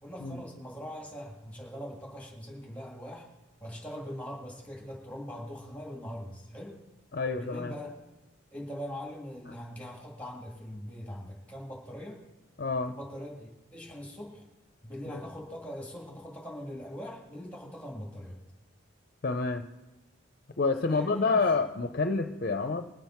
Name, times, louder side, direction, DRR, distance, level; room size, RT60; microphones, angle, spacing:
voice 1, 0.0-3.3 3.6-6.8 7.3-8.0 8.5-12.2 12.8-14.5 14.8-18.4 20.9-21.5, equal, 5° left, -1 dB, 2.0 m, -42 dB
voice 2, 7.1-7.7 12.6-12.9 19.2-19.7 20.6-22.9, left 4 dB, 50° left, 7 dB, 0.6 m, -28 dB
21.0 x 7.5 x 4.4 m, 1.1 s
head